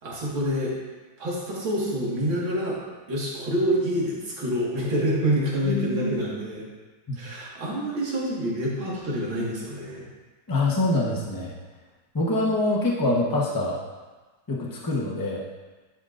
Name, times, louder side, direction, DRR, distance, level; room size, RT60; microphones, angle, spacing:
voice 1, 0.0-0.7 1.2-2.8 3.1-6.6 7.1-10.0, equal, 70° right, -5 dB, 2.5 m, -27 dB
voice 2, 5.6-6.1 7.1-7.2 10.5-11.5 12.1-13.8 14.5-15.4, left 2 dB, 20° left, -4 dB, 0.6 m, -25 dB
11.0 x 6.2 x 2.6 m, 1.3 s
omnidirectional pair, 2.3 m